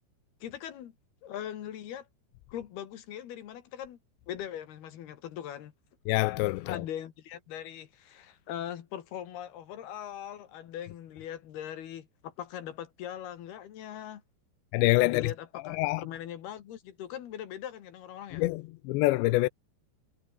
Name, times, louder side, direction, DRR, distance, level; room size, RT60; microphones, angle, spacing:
voice 1, 0.4-0.9 1.2-2.1 2.5-4.0 4.3-5.7 6.7-14.2 15.0-18.5, left 10 dB, 65° left, 3.5 m, -40 dB
voice 2, 6.1-6.8 14.7-15.3 15.7-16.1 18.3-19.5, left 20 dB, 80° left, 2.8 m, -26 dB
omnidirectional pair, 5.3 m